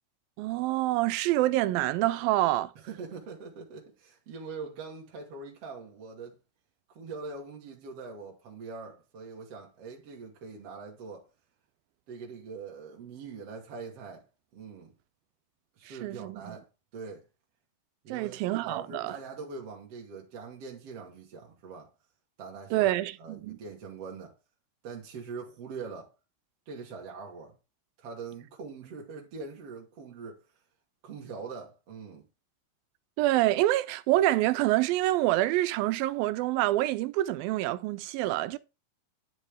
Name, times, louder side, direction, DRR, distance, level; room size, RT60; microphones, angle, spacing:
voice 1, 0.4-2.7 15.9-16.6 18.1-19.2 22.7-23.6 33.2-38.6, right 16 dB, 90° right, 2.5 m, -27 dB
voice 2, 2.8-6.4 6.9-11.3 12.1-14.2 14.5-14.9 15.8-17.2 18.0-21.9 22.4-22.9 23.2-24.4 24.8-26.1 26.7-27.5 28.0-30.4 31.0-32.2, right 4 dB, 50° right, 2.4 m, -43 dB
10.0 x 5.3 x 3.5 m
omnidirectional pair, 4.0 m